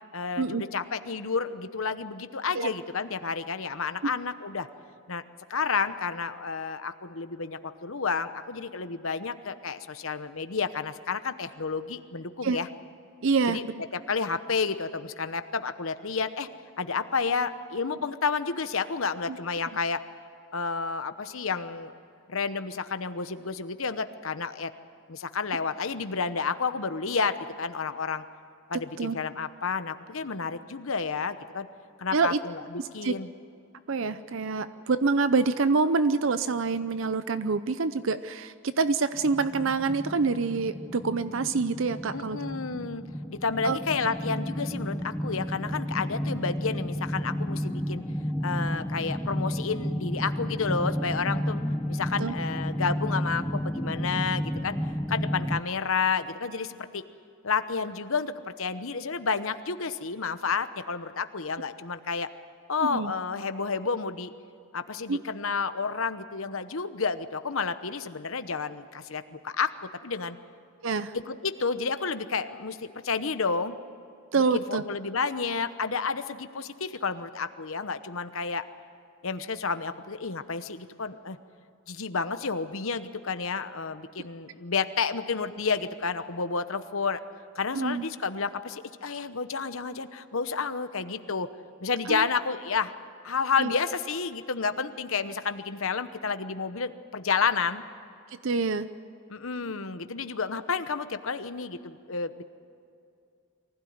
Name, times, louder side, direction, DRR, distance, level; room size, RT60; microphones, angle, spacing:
voice 1, 0.1-4.7 5.1-5.2 5.5-12.7 13.5-13.6 13.9-16.5 16.8-20.0 20.5-21.9 22.3-24.7 25.1-28.2 28.7-31.7 32.0-33.3 42.1-43.0 43.3-48.0 48.4-51.6 51.9-54.8 55.1-57.0 57.4-62.3 62.7-64.3 64.7-69.7 70.0-70.4 71.1-73.8 74.3-78.6 79.2-81.4 81.9-87.2 87.5-91.5 91.8-92.9 93.2-97.8 99.3-102.4, left 5 dB, 65° left, 10 dB, 1.0 m, -30 dB
voice 2, 13.2-13.7 19.3-19.4 29.0-29.2 32.1-32.4 33.0-33.1 33.9-42.4 43.6-43.8 52.2-52.3 62.8-63.1 65.1-65.2 70.8-71.1 74.3-74.8 87.7-88.0 92.1-92.3 93.6-93.7 98.4-98.9, right 4 dB, 60° right, 13 dB, 0.6 m, -26 dB
sound 1, 39.1-55.6, equal, 5° left, 0.7 m, -32 dB
24.0 x 16.0 x 9.5 m, 2.5 s
head